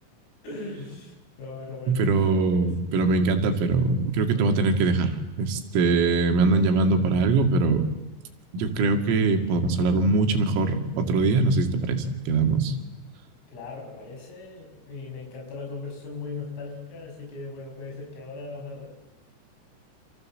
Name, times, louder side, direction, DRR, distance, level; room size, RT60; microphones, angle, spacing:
voice 1, 0.4-3.0 13.5-18.9, left 3 dB, 80° left, 0 dB, 9.0 m, -39 dB
voice 2, 1.9-7.8 8.5-12.7, right 3 dB, 85° right, 5 dB, 4.9 m, -22 dB
28.5 x 27.0 x 7.6 m, 1.1 s
omnidirectional pair, 5.8 m